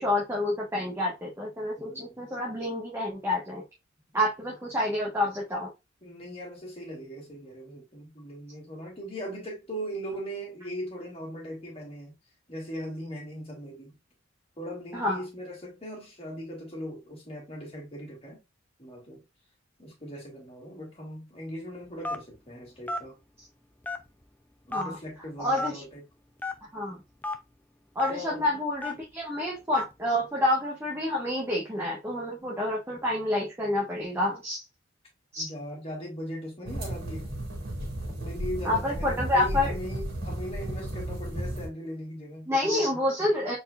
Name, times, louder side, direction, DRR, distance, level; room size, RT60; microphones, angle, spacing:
voice 1, 0.0-3.6 4.1-5.7 14.9-15.2 24.7-25.0 25.4-25.8 26.7-27.0 27.9-34.6 35.3-35.5 38.6-39.7 42.5-43.6, left 1 dB, 15° right, 1.3 m, -28 dB
voice 2, 1.8-2.2 4.1-4.2 6.0-12.2 12.5-14.0 14.6-18.4 18.8-19.2 19.8-23.2 24.7-26.0 28.1-28.4 35.4-37.3 38.1-42.5, equal, 30° left, 2.7 m, -39 dB
Telephone, 22.0-22.4 22.9-23.1 23.8-24.2 24.7-24.8 25.6-25.7 26.4-26.5 27.2-27.4 28.0-28.1 28.8-29.0 29.7-29.9, left 2 dB, 10° left, 0.5 m, -31 dB
sound 1, 36.7-41.7, right 1 dB, 50° right, 2.5 m, -34 dB
4.4 x 4.2 x 2.4 m
head